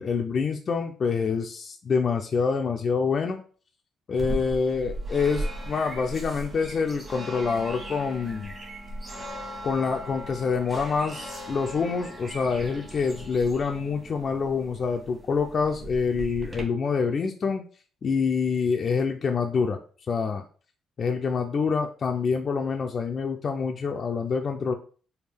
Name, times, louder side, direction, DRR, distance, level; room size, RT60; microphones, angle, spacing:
voice 1, 0.0-3.4 4.1-8.6 9.6-17.6 18.0-19.8 20.1-20.4 21.0-24.7, left 5 dB, 45° left, 3 dB, 0.4 m, -26 dB
sound 1, 4.2-16.6, right 1 dB, 30° right, 1.3 m, -38 dB
3.5 x 2.3 x 3.3 m, 0.41 s
cardioid pair, 85°, 0 cm